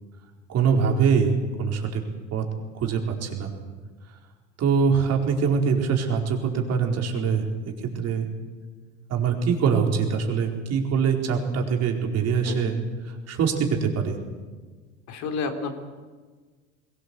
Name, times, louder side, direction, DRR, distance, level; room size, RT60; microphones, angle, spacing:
voice 1, 0.5-2.0 2.3-2.4 2.8-3.5 4.6-8.3 9.1-12.8 13.0-14.2, right 6 dB, 45° right, 2 dB, 4.5 m, -23 dB
voice 2, 15.1-15.7, left 4 dB, 55° left, 6 dB, 3.4 m, -30 dB
21.5 x 17.5 x 8.5 m, 1.4 s
hypercardioid pair, 85°, 34 cm